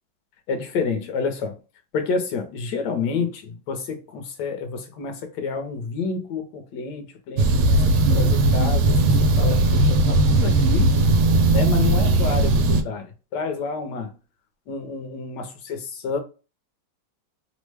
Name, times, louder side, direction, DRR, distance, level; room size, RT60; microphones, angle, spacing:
voice 1, 0.5-1.6 1.9-7.8 8.1-10.9 11.5-14.1 14.7-16.2, left 5 dB, 65° left, 1.2 m, -29 dB
sound 1, 7.4-12.8, right 2 dB, 85° right, 1.4 m, -18 dB
3.4 x 2.1 x 3.1 m
omnidirectional pair, 2.2 m